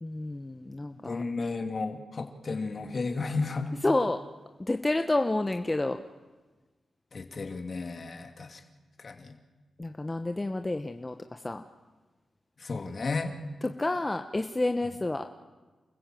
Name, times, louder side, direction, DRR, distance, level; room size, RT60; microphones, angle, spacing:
voice 1, 0.0-1.2 3.8-4.2 4.6-6.0 9.8-11.6 13.8-15.2, left 2 dB, 25° left, 7 dB, 1.1 m, -29 dB
voice 2, 1.0-3.7 7.1-8.6 9.0-9.4 12.6-13.3, left 3 dB, 55° left, 5 dB, 2.8 m, -33 dB
29.5 x 15.5 x 7.8 m, 1.3 s
supercardioid pair, 45°, 0 cm